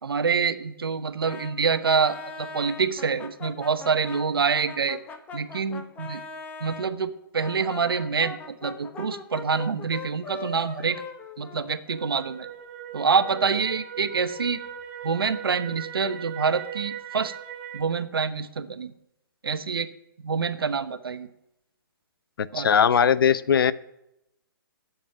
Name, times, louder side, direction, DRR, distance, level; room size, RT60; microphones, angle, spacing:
voice 1, 0.0-5.0 5.3-6.2 6.6-11.0 11.4-12.5 12.9-14.6 15.0-17.3 17.7-18.9 19.4-19.9 20.2-21.3 22.5-22.7, right 5 dB, 85° right, 11 dB, 1.1 m, -26 dB
Brass instrument, 1.2-6.9 7.4-12.2, left 4 dB, 15° left, 1.0 m, -40 dB
sound 1, 11.9-17.8, right 8 dB, 30° right, 4.2 m, -39 dB
voice 2, 22.4-23.7, left 7 dB, 70° left, 17 dB, 0.6 m, -20 dB
10.5 x 7.2 x 8.7 m, 0.84 s
hypercardioid pair, 145°, 12 cm